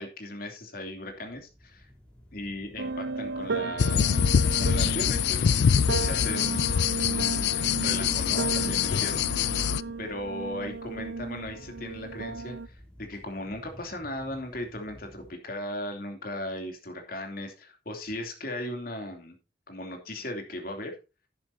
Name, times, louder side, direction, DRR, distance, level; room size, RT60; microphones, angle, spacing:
voice 1, 0.0-1.9 2.3-4.2 4.5-5.4 6.0-6.7 7.0-9.6 10.0-19.3 19.7-20.9, left 1 dB, 55° left, 4 dB, 2.9 m, -37 dB
sound 1, 0.9-15.3, equal, 5° left, 4.2 m, -52 dB
sound 2, 2.8-12.7, right 4 dB, 80° right, 0.7 m, -34 dB
sound 3, 3.8-9.8, left 8 dB, 70° left, 0.4 m, -25 dB
11.5 x 10.5 x 2.8 m, 0.30 s
head